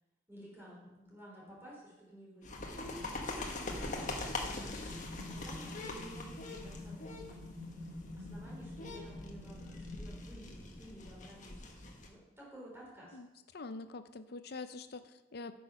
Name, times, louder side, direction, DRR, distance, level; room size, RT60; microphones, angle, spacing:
voice 1, 0.3-4.8 5.1-7.4 8.2-13.2, equal, 15° right, -5 dB, 3.9 m, -53 dB
sound 1, 2.4-12.1, left 2 dB, 45° left, 1.3 m, -43 dB
sound 2, 4.9-10.2, left 2 dB, 90° right, 2.2 m, -48 dB
voice 2, 13.5-15.5, left 3 dB, 60° left, 11 dB, 0.6 m, -45 dB
8.9 x 6.3 x 5.7 m, 1.0 s
head